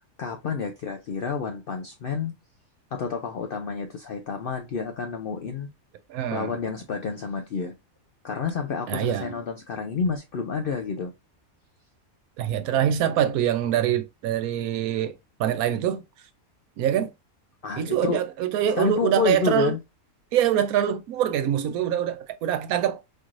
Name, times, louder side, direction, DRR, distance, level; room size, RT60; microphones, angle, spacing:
voice 1, 0.2-2.3 2.9-5.7 6.3-7.7 8.2-11.1 17.6-18.2 18.8-19.8, left 5 dB, 75° left, 0.5 m, -29 dB
voice 2, 6.1-6.5 8.9-9.4 12.4-15.1 15.4-16.0 16.8-17.1 17.8-19.7 20.3-23.0, right 10 dB, 85° right, 1.0 m, -24 dB
4.3 x 3.1 x 2.5 m
omnidirectional pair, 1.5 m